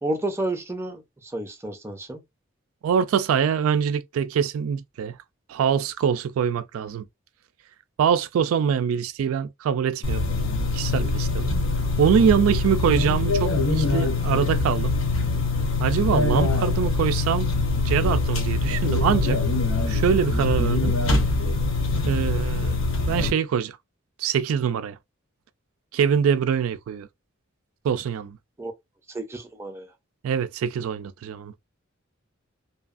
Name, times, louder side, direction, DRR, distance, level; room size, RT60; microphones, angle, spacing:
voice 1, 0.0-2.2 12.2-12.5 28.6-28.7 29.1-29.9, right 1 dB, 10° right, 0.5 m, -31 dB
voice 2, 2.8-5.2 5.5-7.1 8.0-10.2 10.7-11.5 12.0-14.9 15.8-17.5 17.8-19.4 19.9-21.0 22.0-22.8 23.1-23.8 24.2-25.0 25.9-27.1 27.8-28.4 30.2-31.5, right 7 dB, 80° right, 0.3 m, -24 dB
sound 1, 10.0-23.3, left 3 dB, 75° left, 0.8 m, -23 dB
2.8 x 2.4 x 2.4 m
head